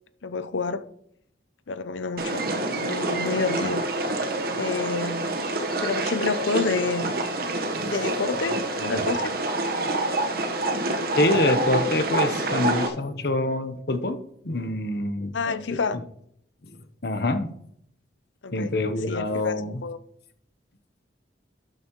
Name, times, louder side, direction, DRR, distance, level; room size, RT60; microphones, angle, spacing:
voice 1, 0.2-0.8 1.7-2.4 2.7-3.8 4.6-5.4 5.8-7.3 7.8-9.3 15.3-16.0 18.4-18.8 19.1-19.5 19.8-20.0, left 4 dB, 80° left, 0.7 m, -29 dB
sound 1, 2.2-12.9, right 2 dB, 50° right, 1.3 m, -27 dB
voice 2, 11.2-14.2 14.4-16.0 17.0-17.5 18.5-19.8, left 2 dB, 55° left, 1.0 m, -26 dB
12.5 x 9.2 x 3.1 m
head